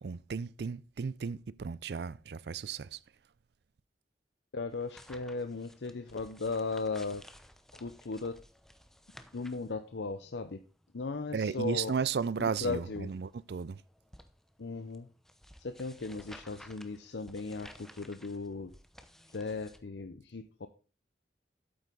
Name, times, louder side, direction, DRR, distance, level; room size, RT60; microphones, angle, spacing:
voice 1, 0.0-3.0 11.3-13.8, right 6 dB, 65° right, 0.4 m, -34 dB
voice 2, 4.5-7.2 7.7-8.4 9.3-10.6 10.9-11.9 12.6-13.1 14.6-15.1 15.6-18.7 19.3-20.7, left 3 dB, 80° left, 0.6 m, -37 dB
sound 1, 4.7-19.8, equal, ahead, 0.7 m, -56 dB
8.7 x 8.2 x 3.8 m
head